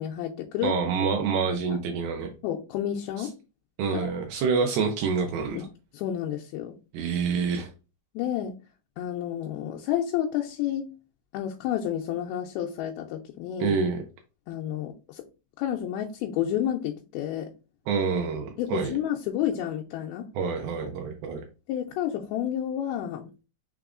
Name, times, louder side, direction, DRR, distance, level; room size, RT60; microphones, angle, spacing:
voice 1, 0.0-0.8 2.4-3.4 3.9-4.1 5.5-5.7 5.9-6.7 8.2-8.5 9.0-10.9 11.3-13.8 14.5-15.2 15.6-17.5 18.6-20.3 21.7-23.4, left 10 dB, 85° left, 2.4 m, -30 dB
voice 2, 0.6-2.3 3.2-3.3 3.8-5.7 6.9-7.7 13.6-14.0 17.9-19.0 20.3-21.4, right 5 dB, 80° right, 2.5 m, -27 dB
6.0 x 3.5 x 2.4 m
omnidirectional pair, 4.3 m